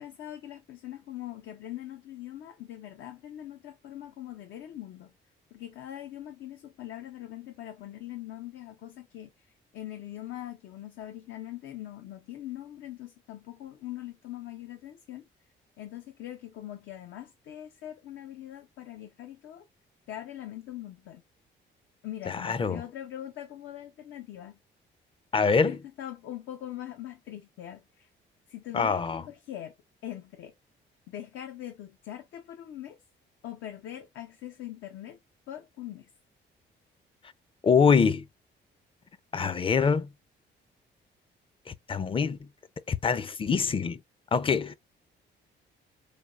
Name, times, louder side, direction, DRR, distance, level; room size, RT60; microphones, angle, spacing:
voice 1, 0.0-5.1 5.5-9.5 9.7-15.2 15.8-19.7 20.1-21.2 22.0-24.6 25.6-28.1 28.5-29.8 30.0-30.5 31.1-33.0 33.4-35.2 35.5-36.1, left 12 dB, 80° left, 0.7 m, -42 dB
voice 2, 22.3-22.8 25.3-25.8 28.7-29.2 37.6-38.3 39.3-40.1 41.7-42.4 42.9-44.0 44.3-44.7, left 5 dB, 25° left, 0.5 m, -24 dB
3.8 x 3.4 x 2.3 m
cardioid pair, 90°, 20 cm